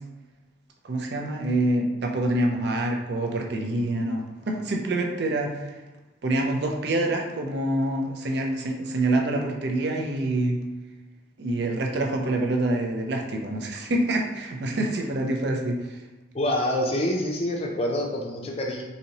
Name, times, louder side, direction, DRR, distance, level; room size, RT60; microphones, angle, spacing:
voice 1, 0.8-5.5 6.2-10.6 11.4-16.0, right 1 dB, 60° right, 1 dB, 0.5 m, -26 dB
voice 2, 16.3-18.8, left 1 dB, 30° left, 0 dB, 0.5 m, -26 dB
4.1 x 2.7 x 2.9 m, 1.2 s
head